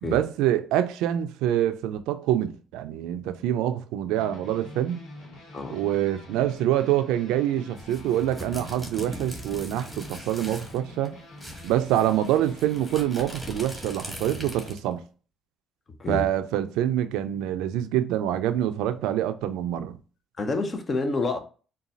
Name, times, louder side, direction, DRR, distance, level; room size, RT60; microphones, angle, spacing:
voice 1, 0.0-5.0 5.7-11.2 11.6-15.0 16.1-20.0, right 12 dB, 90° right, 0.3 m, -26 dB
sound 1, 4.1-14.8, left 2 dB, 85° left, 1.2 m, -46 dB
sound 2, 7.8-10.8 11.0-11.1 11.4-14.9, equal, 5° left, 1.4 m, -40 dB
voice 2, 20.4-21.4, left 3 dB, 40° left, 0.7 m, -28 dB
3.9 x 2.3 x 3.8 m
supercardioid pair, 70°, 0 cm